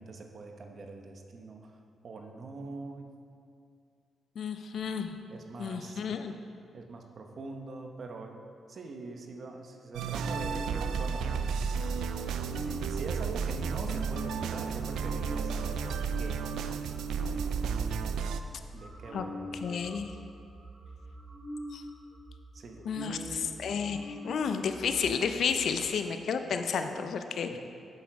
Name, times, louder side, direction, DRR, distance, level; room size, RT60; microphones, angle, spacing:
voice 1, 0.0-3.2 5.3-6.0 6.4-6.5 6.7-8.4 8.7-11.6 12.6-16.5 18.7-19.7 22.5-23.6 27.5-27.6, right 3 dB, 55° right, 3 dB, 0.9 m, -43 dB
voice 2, 4.4-5.1 5.6-6.3 19.1-19.2 19.6-20.1 21.7-21.8 22.9-23.2 23.6-27.6, left 6 dB, 70° left, 7 dB, 0.6 m, -31 dB
sound 1, 9.9-18.4, right 6 dB, 85° right, 0.4 m, -32 dB
sound 2, 10.1-17.6 18.2-18.3 18.5-25.9, equal, 35° right, 2.2 m, -45 dB
7.7 x 7.2 x 4.7 m, 2.4 s
cardioid pair, 70°, 0 cm